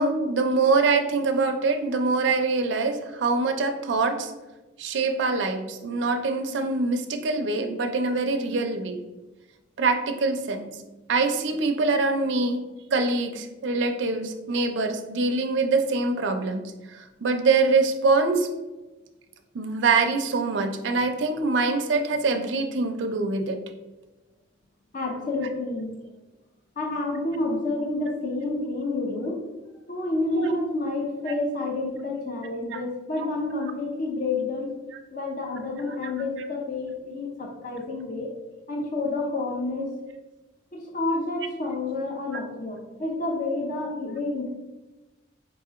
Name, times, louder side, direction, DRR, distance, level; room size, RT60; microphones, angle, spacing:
voice 1, 0.0-4.3 4.8-9.0 9.8-10.8 11.1-16.6 16.9-18.5 19.5-23.6 30.3-30.5 32.7-32.8 35.9-36.1, right 3 dB, 65° right, 6 dB, 0.4 m, -24 dB
voice 2, 24.9-25.9 26.8-29.4 29.9-34.7 35.1-38.3 38.7-39.9 40.7-44.5, left 2 dB, 45° left, 0 dB, 0.5 m, -29 dB
4.8 x 2.7 x 2.4 m, 1.1 s
head